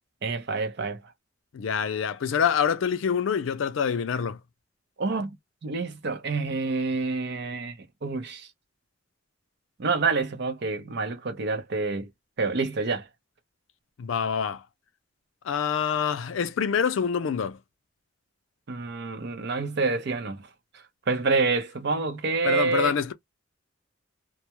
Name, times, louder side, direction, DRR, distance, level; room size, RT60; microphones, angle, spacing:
voice 1, 0.2-1.0 5.0-5.4 5.6-8.5 9.8-12.1 12.4-13.1 18.7-20.5 21.1-22.9, right 4 dB, 60° right, 0.5 m, -27 dB
voice 2, 1.5-4.4 14.0-14.6 15.4-17.6 22.4-23.1, left 7 dB, 85° left, 0.4 m, -26 dB
2.2 x 2.0 x 2.8 m
head